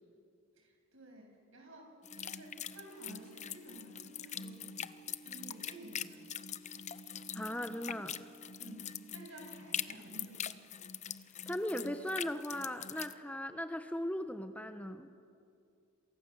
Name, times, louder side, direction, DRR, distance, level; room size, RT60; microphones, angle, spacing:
voice 1, 0.6-6.3 8.6-10.5, right 1 dB, 70° right, 2 dB, 7.9 m, -53 dB
sound 1, 2.0-13.1, left 9 dB, 35° left, 0.7 m, -43 dB
sound 2, 2.0-9.7, right 1 dB, 20° right, 4.8 m, -57 dB
voice 2, 7.3-8.2 11.5-15.1, left 1 dB, 5° left, 8 dB, 1.0 m, -38 dB
28.0 x 28.0 x 7.6 m, 2.4 s
head